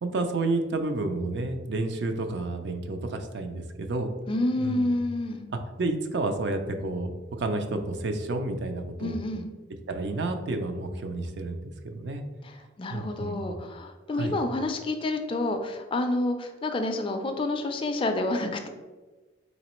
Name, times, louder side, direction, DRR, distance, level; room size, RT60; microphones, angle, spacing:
voice 1, 0.0-4.1 4.6-4.9 5.5-7.1 7.4-9.2 9.9-12.2 12.9-13.5 14.1-14.4, right 2 dB, 60° right, 6 dB, 0.4 m, -30 dB
voice 2, 4.3-5.5 9.0-9.5 12.4-18.7, left 2 dB, 25° left, 5 dB, 0.3 m, -29 dB
4.1 x 3.0 x 2.9 m, 1.3 s
head